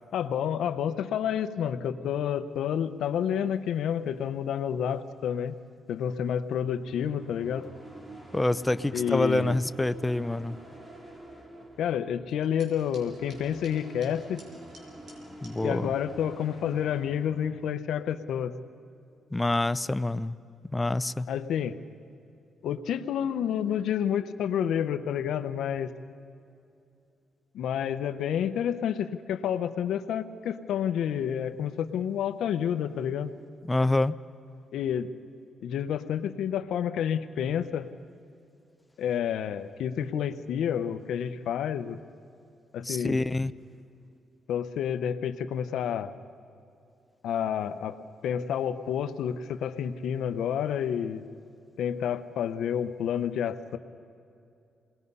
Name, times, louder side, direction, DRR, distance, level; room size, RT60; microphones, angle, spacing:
voice 1, 0.1-5.6 5.9-7.7 8.9-9.6 11.8-14.4 15.6-18.5 21.3-21.8 22.6-25.9 27.5-33.3 34.7-35.1 35.6-37.9 39.0-42.0 42.7-43.2 44.5-46.1 47.2-48.0 48.2-51.2 51.8-53.8, left 9 dB, 80° left, 10 dB, 0.8 m, -29 dB
sound 1, 6.6-17.7, right 1 dB, 20° right, 3.6 m, -47 dB
voice 2, 8.3-10.6 15.4-15.9 19.3-20.4 20.7-21.3 33.7-34.2 42.9-43.5, left 2 dB, 15° left, 15 dB, 0.5 m, -26 dB
sound 2, 12.3-15.5, right 1 dB, 60° right, 6.3 m, -55 dB
28.5 x 20.5 x 5.5 m, 2.6 s
cardioid pair, 110°, 0 cm